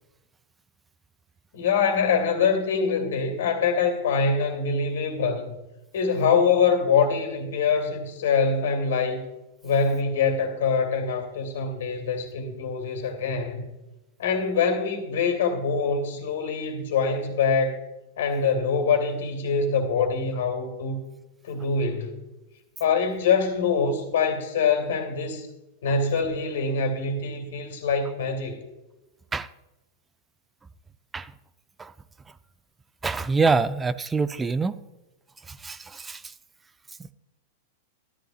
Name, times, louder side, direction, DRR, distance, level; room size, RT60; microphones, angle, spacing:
voice 1, 1.5-5.5 5.9-9.2 9.6-13.7 14.2-17.8 18.2-21.0 21.4-22.1 22.8-25.5 25.8-28.6, left 5 dB, 60° left, 5 dB, 2.6 m, -24 dB
voice 2, 33.0-34.8 35.5-36.2, right 4 dB, 15° right, 15 dB, 0.5 m, -25 dB
14.0 x 13.5 x 2.4 m, 1.0 s
figure-of-eight pair, 95°, 0 cm